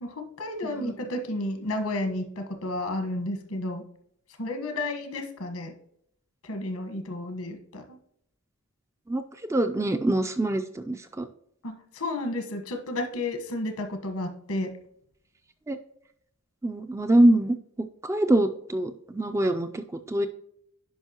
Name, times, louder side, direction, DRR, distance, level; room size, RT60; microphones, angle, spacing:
voice 1, 0.0-3.8 4.4-5.7 6.4-8.0 11.6-14.7, left 1 dB, 80° left, 6 dB, 1.3 m, -32 dB
voice 2, 9.5-11.3 15.7-15.8 16.6-17.5 18.0-20.3, right 1 dB, 15° right, 7 dB, 0.3 m, -24 dB
10.0 x 5.4 x 2.9 m, 0.72 s
head